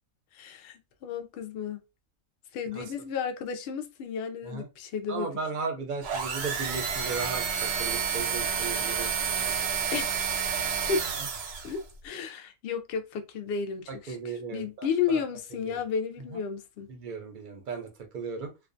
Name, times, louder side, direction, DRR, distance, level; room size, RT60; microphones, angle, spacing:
voice 1, 0.3-1.8 2.5-5.3 9.9-10.4 10.9-11.0 11.6-16.9, left 6 dB, 65° left, 0.6 m, -33 dB
voice 2, 5.1-9.6 11.2-11.3 13.9-15.2 15.6-15.8 16.3-16.4 16.9-18.5, right 4 dB, 50° right, 0.6 m, -36 dB
sound 1, 6.0-11.8, right 7 dB, 75° right, 1.0 m, -30 dB
2.4 x 2.2 x 2.4 m
omnidirectional pair, 1.5 m